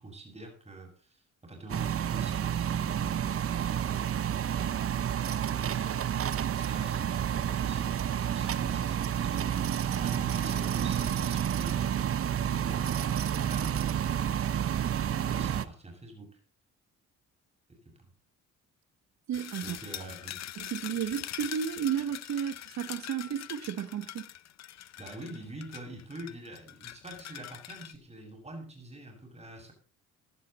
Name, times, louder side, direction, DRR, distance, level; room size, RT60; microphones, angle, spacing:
voice 1, 0.0-4.2 5.4-6.0 6.5-14.0 15.1-16.4 17.7-18.1 19.6-20.3 25.0-29.7, right 1 dB, 20° right, 6.9 m, -46 dB
sound 1, 1.7-15.6, right 9 dB, 50° right, 0.9 m, -30 dB
sound 2, 19.3-28.0, left 12 dB, 60° left, 0.7 m, -43 dB
voice 2, 19.3-19.8 20.6-24.3, right 9 dB, 65° right, 1.3 m, -33 dB
16.5 x 11.5 x 4.2 m
cardioid pair, 90°, 30 cm